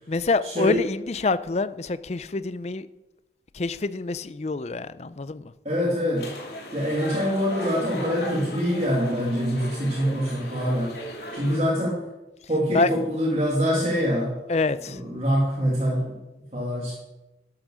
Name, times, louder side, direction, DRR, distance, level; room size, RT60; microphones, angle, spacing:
voice 1, 0.1-2.9 3.5-5.5 12.7-12.9 14.5-15.0, left 3 dB, 35° left, 15 dB, 0.5 m, -26 dB
voice 2, 5.6-6.3 6.7-11.0 11.3-12.1 12.5-14.4 14.9-16.2 16.5-16.9, equal, 35° right, -4 dB, 2.3 m, -25 dB
sound 1, 6.2-11.6, equal, 65° left, 2.7 m, -37 dB
12.0 x 8.8 x 6.2 m, 1.0 s
head